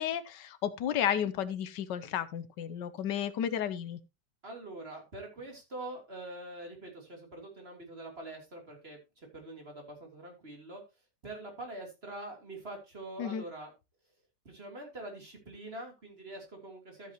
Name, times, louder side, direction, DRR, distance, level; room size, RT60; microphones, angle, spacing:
voice 1, 0.0-4.0 13.2-13.4, left 9 dB, 90° left, 1.5 m, -32 dB
voice 2, 4.4-10.8 11.2-13.7 14.4-17.1, right 2 dB, 35° right, 3.5 m, -44 dB
13.5 x 8.2 x 2.9 m
omnidirectional pair, 1.8 m